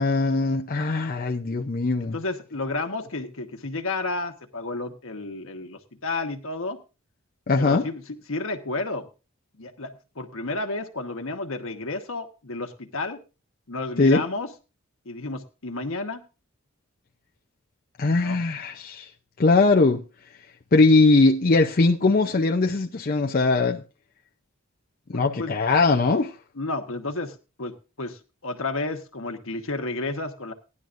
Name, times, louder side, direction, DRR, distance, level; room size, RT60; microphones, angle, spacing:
voice 1, 0.0-2.2 7.5-7.9 14.0-14.2 18.0-19.1 19.4-20.0 20.7-23.8 25.1-26.3, left 3 dB, 40° left, 0.6 m, -20 dB
voice 2, 2.0-6.8 7.6-9.1 9.6-13.2 13.7-14.5 15.0-16.2 18.2-18.4 20.9-21.0 25.1-25.6 26.5-30.5, left 2 dB, 70° left, 1.2 m, -32 dB
16.5 x 11.0 x 2.6 m
head